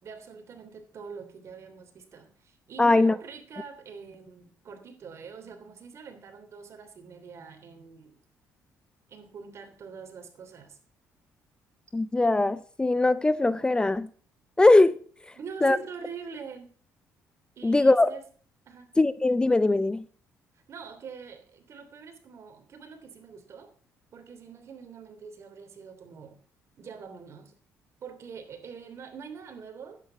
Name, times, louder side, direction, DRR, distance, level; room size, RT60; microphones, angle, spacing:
voice 1, 0.0-8.2 9.1-10.8 15.3-16.7 17.6-18.2 18.7-18.9 20.5-23.7 24.1-26.4 26.8-27.5 28.0-30.0, right 6 dB, 50° right, 3.1 m, -44 dB
voice 2, 2.8-3.2 11.9-14.1 14.6-15.0 15.6-15.8 17.6-18.1 19.0-20.0, left 2 dB, 15° left, 0.6 m, -21 dB
11.0 x 9.5 x 5.9 m
cardioid pair, 95°, 6 cm